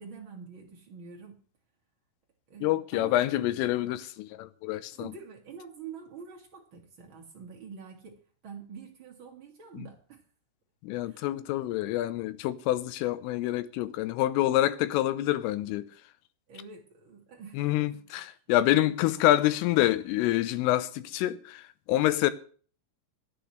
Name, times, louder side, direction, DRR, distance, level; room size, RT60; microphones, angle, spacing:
voice 1, 0.0-1.4 2.5-3.5 4.9-10.2 11.0-11.3 16.5-18.4 19.0-19.3 22.2-22.3, right 6 dB, 90° right, 1.1 m, -47 dB
voice 2, 2.6-5.1 10.8-15.9 17.6-22.3, left 14 dB, 85° left, 3.4 m, -27 dB
26.5 x 9.2 x 3.3 m
omnidirectional pair, 5.7 m